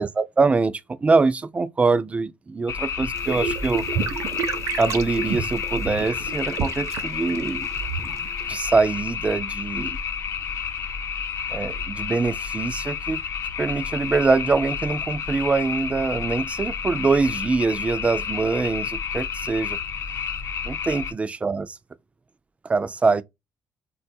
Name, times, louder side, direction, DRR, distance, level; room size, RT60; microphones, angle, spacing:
voice 1, 0.0-3.8 4.8-7.7 8.0-8.2 8.5-10.0 11.5-13.2 13.6-19.8 20.6-21.8 22.6-23.2, right 4 dB, 20° right, 0.3 m, -23 dB
sound 1, 2.7-21.1, left 7 dB, 50° left, 0.5 m, -30 dB
sound 2, 3.1-8.5, right 6 dB, 60° right, 0.6 m, -30 dB
3.8 x 2.3 x 2.5 m
cardioid pair, 115°, 6 cm